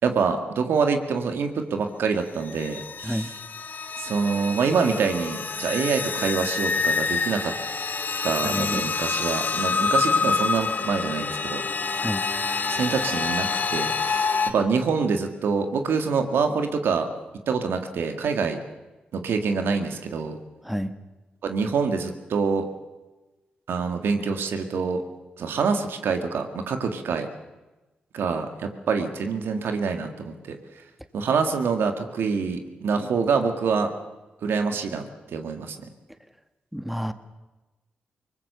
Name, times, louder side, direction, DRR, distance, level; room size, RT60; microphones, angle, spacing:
voice 1, 0.0-3.4 4.0-7.5 8.2-11.6 12.7-17.1 17.5-18.6 19.1-20.4 21.4-22.7 23.7-25.0 25.4-27.3 28.1-30.6 31.1-33.9 34.4-35.8, right 5 dB, 75° right, 6 dB, 1.8 m, -26 dB
sound 1, 2.5-14.5, left 4 dB, 55° left, 1.9 m, -27 dB
voice 2, 8.4-8.8 12.0-12.2 20.6-20.9 36.7-37.1, equal, 5° right, 10 dB, 1.6 m, -29 dB
22.5 x 20.0 x 6.8 m, 1.1 s
supercardioid pair, 45°, 4 cm